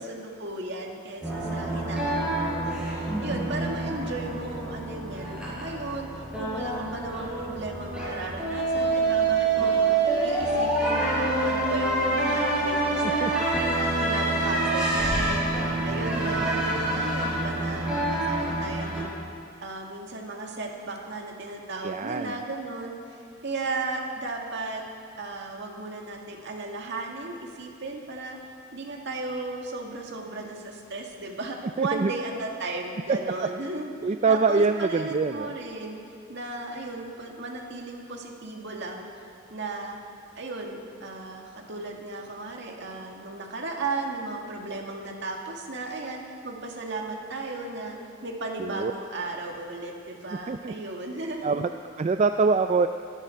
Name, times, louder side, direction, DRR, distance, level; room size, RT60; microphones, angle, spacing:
voice 1, 0.0-15.4 15.8-19.1 19.6-23.0 23.4-24.8 25.2-28.4 28.7-36.0 36.3-39.1 39.5-40.0 40.4-48.0 48.2-51.5, right 2 dB, 55° right, 0 dB, 2.0 m, -35 dB
sound 1, 1.2-19.0, right 2 dB, 5° right, 4.8 m, -27 dB
voice 2, 21.8-22.3 31.8-32.1 33.1-33.2 34.0-35.5 48.6-48.9 50.5-50.7 51.4-51.7 52.0-52.9, right 4 dB, 35° right, 7 dB, 0.3 m, -24 dB
22.0 x 12.5 x 4.5 m, 2.4 s
head